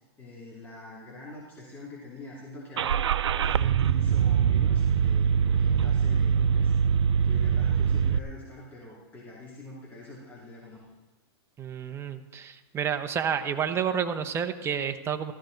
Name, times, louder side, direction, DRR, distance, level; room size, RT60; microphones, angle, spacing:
voice 1, 0.2-6.7 7.2-10.8, left 2 dB, 15° left, -6 dB, 2.8 m, -45 dB
Car / Engine starting, 2.8-8.2, right 7 dB, 90° right, 0.5 m, -23 dB
voice 2, 11.6-15.3, right 7 dB, 20° right, 7 dB, 0.9 m, -30 dB
15.0 x 13.5 x 4.0 m, 1.2 s
hypercardioid pair, 140°, 14 cm